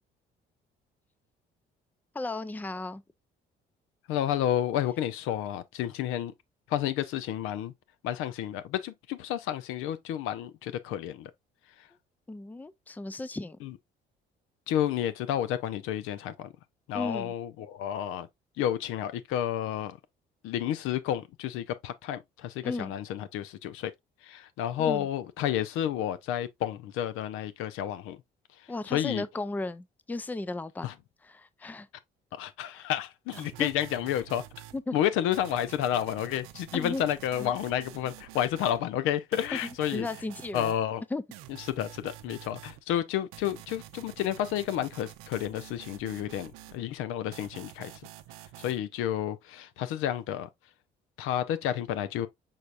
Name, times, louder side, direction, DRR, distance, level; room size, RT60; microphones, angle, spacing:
voice 1, 2.1-3.0 12.3-13.6 16.9-17.3 22.6-22.9 24.8-25.1 28.7-30.9 31.2-31.9 32.7-32.9 33.6-33.7 34.7-35.0 36.7-37.0 37.4-37.5 39.5-40.7 41.1-41.2, left 2 dB, 10° left, 0.4 m, -35 dB
voice 2, 4.1-6.3 6.7-7.7 8.0-11.3 11.8-11.9 13.6-13.7 14.7-16.5 16.9-18.3 18.6-20.0 20.4-23.9 24.2-28.2 28.9-29.2 30.8-30.9 31.6-31.7 32.3-34.4 34.9-40.1 40.5-41.0 41.7-47.9 48.6-50.5 51.2-52.3, left 11 dB, 80° left, 0.5 m, -31 dB
sound 1, 33.3-34.8 35.3-38.8 39.3-40.8 41.3-42.8 43.3-46.8 47.3-48.8, right 14 dB, 90° right, 0.5 m, -48 dB
5.6 x 3.4 x 2.4 m
supercardioid pair, 75°, 21 cm